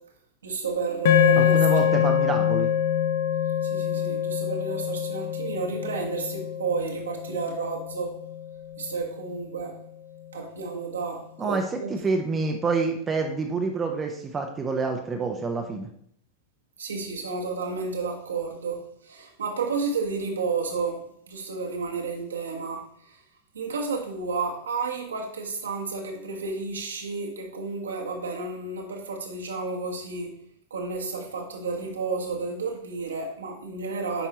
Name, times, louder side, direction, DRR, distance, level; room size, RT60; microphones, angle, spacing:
voice 1, 0.4-1.6 2.0-2.5 3.6-8.2 8.8-9.8 10.3-12.1 16.8-23.2 23.5-30.3 30.7-34.3, right 4 dB, 70° right, 1 dB, 1.4 m, -31 dB
sound 1, 1.0-9.4, left 9 dB, 55° left, 0.7 m, -25 dB
voice 2, 1.4-2.7 11.4-15.9, right 4 dB, 20° right, 3 dB, 0.8 m, -27 dB
8.8 x 5.5 x 3.0 m, 0.65 s
figure-of-eight pair, 90°, 0 cm